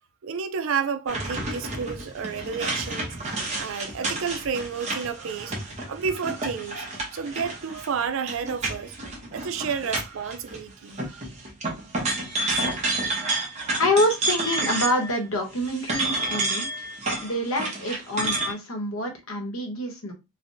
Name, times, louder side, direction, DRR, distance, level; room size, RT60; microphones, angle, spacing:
voice 1, 0.2-8.9 9.3-11.2, right 6 dB, 65° right, 0.4 m, -31 dB
sound 1, 1.1-10.6 10.9-15.2 15.5-18.5, right 2 dB, 30° right, 0.8 m, -30 dB
voice 2, 13.8-16.7 17.2-20.1, left 1 dB, 75° left, 1.0 m, -26 dB
3.2 x 2.2 x 2.6 m
head